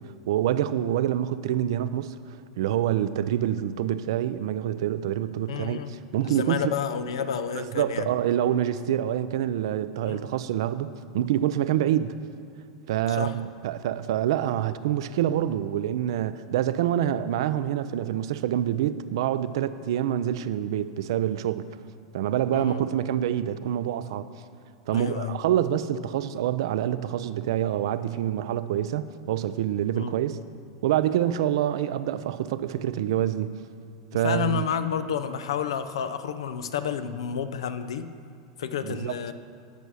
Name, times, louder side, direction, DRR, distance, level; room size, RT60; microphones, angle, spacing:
voice 1, 0.3-2.2 2.6-6.7 7.5-10.9 11.1-12.2 12.9-21.6 22.1-24.3 24.9-30.4 30.8-33.5 34.1-34.6 38.8-39.1, right 11 dB, 75° right, 13 dB, 0.5 m, -26 dB
voice 2, 5.5-6.0 6.2-8.1 10.0-10.2 13.1-13.3 22.5-22.8 24.9-25.4 30.0-30.2 34.2-38.1 38.6-39.3, left 8 dB, 85° left, 11 dB, 0.6 m, -30 dB
13.5 x 5.6 x 6.3 m, 2.2 s
hypercardioid pair, 110°, 3 cm